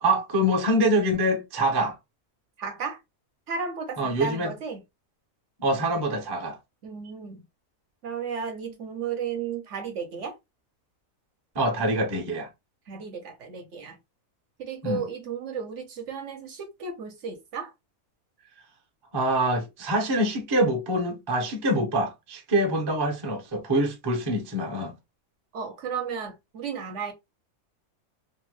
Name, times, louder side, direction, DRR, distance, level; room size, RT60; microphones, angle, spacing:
voice 1, 0.0-2.0 4.0-4.5 5.6-6.6 11.5-12.5 14.8-15.0 19.1-24.9, right 1 dB, 25° right, 0.5 m, -25 dB
voice 2, 2.6-3.0 3.5-4.8 6.8-7.5 8.0-10.3 12.9-14.0 14.6-17.7 25.5-27.1, right 6 dB, 65° right, 0.9 m, -34 dB
3.0 x 2.1 x 3.0 m
omnidirectional pair, 1.5 m